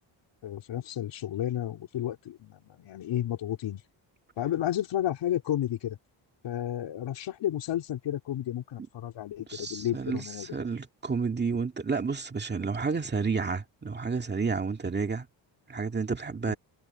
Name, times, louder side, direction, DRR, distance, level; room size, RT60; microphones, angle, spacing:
voice 1, 0.4-3.8 4.4-6.0 6.4-10.5 16.5-16.6, left 11 dB, 75° left, 3.7 m, -32 dB
voice 2, 9.5-15.3 15.7-16.5, right 5 dB, 25° right, 2.1 m, -30 dB
cardioid pair, 145°, 44 cm